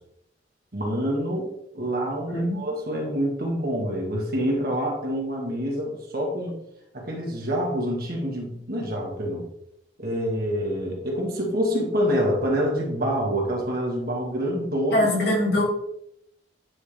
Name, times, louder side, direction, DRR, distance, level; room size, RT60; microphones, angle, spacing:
voice 1, 0.7-6.6 6.9-9.5 10.0-15.1, equal, 55° right, -1 dB, 1.7 m, -26 dB
voice 2, 2.3-2.8 14.9-15.6, left 1 dB, 60° left, -3 dB, 2.3 m, -23 dB
9.6 x 3.7 x 3.3 m, 0.78 s
head